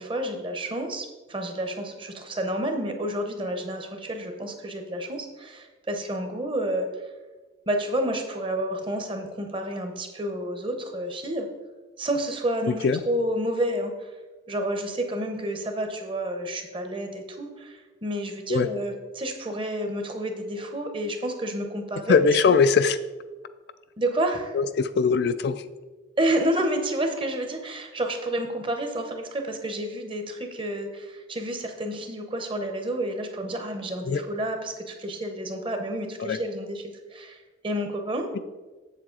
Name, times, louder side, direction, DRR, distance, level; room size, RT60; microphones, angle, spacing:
voice 1, 0.0-6.9 7.7-11.5 12.0-14.1 14.5-22.4 24.0-24.6 26.2-38.3, right 1 dB, 25° right, 5 dB, 0.8 m, -30 dB
voice 2, 22.1-23.0 24.5-25.6 34.0-34.2 36.2-36.4, left 5 dB, 55° left, 11 dB, 0.3 m, -21 dB
7.5 x 7.3 x 3.8 m, 1.3 s
head